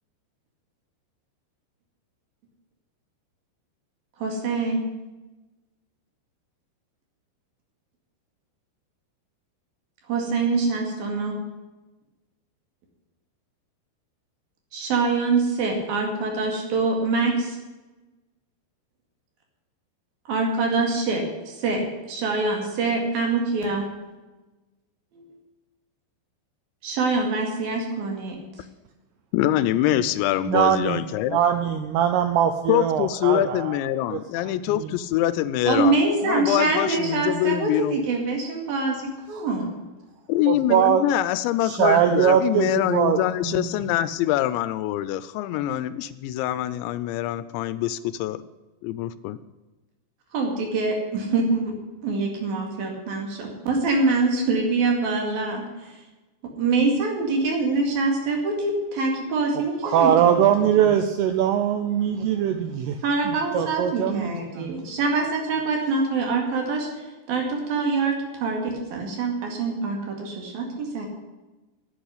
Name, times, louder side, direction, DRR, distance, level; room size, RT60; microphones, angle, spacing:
voice 1, 4.2-4.8 10.1-11.4 14.7-17.6 20.3-21.8 22.1-23.9 25.1-25.2 26.8-28.4 35.6-39.7 50.3-51.7 52.0-56.0 56.4-60.4 60.8-61.1 63.0-71.1, right 3 dB, 60° right, 1 dB, 3.7 m, -25 dB
voice 2, 29.3-31.4 32.7-36.0 36.2-38.0 40.3-48.4 48.8-49.4, left 13 dB, 85° left, 15 dB, 2.8 m, -24 dB
voice 3, 30.5-33.8 34.1-34.9 39.4-39.5 40.5-41.0 41.6-43.2 43.5-43.6 59.8-63.0 63.5-64.7, right 9 dB, 80° right, 8 dB, 2.4 m, -22 dB
10.5 x 8.5 x 9.8 m, 1.1 s
omnidirectional pair, 5.3 m